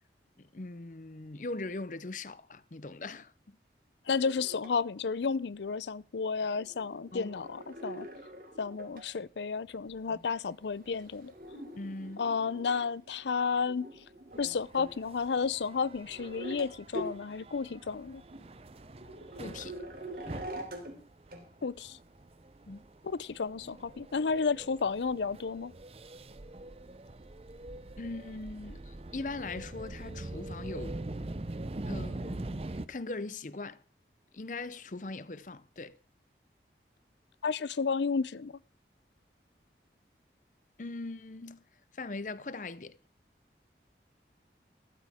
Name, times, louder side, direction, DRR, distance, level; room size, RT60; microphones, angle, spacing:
voice 1, 0.4-3.3 7.1-7.4 11.7-12.2 19.4-19.8 22.7-22.9 28.0-31.0 31.9-32.6 32.9-33.8 34.3-36.0 40.8-41.6 41.9-43.0, left 3 dB, 45° left, 0.7 m, -40 dB
voice 2, 4.1-8.1 8.6-11.3 12.2-13.9 14.4-18.2 21.6-22.0 23.0-25.7 37.4-38.6, left 5 dB, 85° left, 0.5 m, -32 dB
sound 1, 4.1-4.7 6.4-9.1 9.7-15.0 15.3-15.4 16.1-16.7 16.9-17.2 18.0-18.1 18.3-21.0 21.3-21.4 22.2-22.3, right 1 dB, 55° right, 3.0 m, -45 dB
sound 2, 14.3-32.9, right 2 dB, 35° right, 0.6 m, -44 dB
14.0 x 12.5 x 3.6 m
head